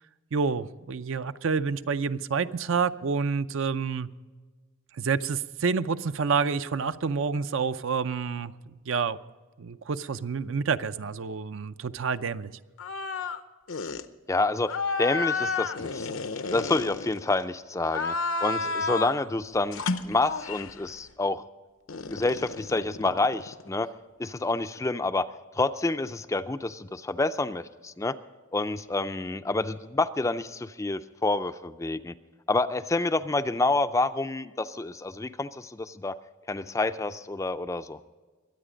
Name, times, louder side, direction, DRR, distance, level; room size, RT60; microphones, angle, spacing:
voice 1, 0.3-4.1 5.0-8.5 8.9-9.2 9.6-12.5, right 5 dB, 65° right, 12 dB, 0.5 m, -28 dB
sound 1, 12.8-13.4 13.7-14.0 14.7-17.4 17.9-19.2 19.7-20.8 21.9-23.7, left 4 dB, 75° left, 0.8 m, -31 dB
voice 2, 14.3-16.1 16.5-18.1 18.4-21.4 22.1-23.9 24.2-25.3 25.5-28.1 28.5-32.1 32.5-36.1 36.5-38.0, left 2 dB, 15° left, 11 dB, 0.4 m, -28 dB
22.5 x 9.0 x 5.1 m, 1.4 s
head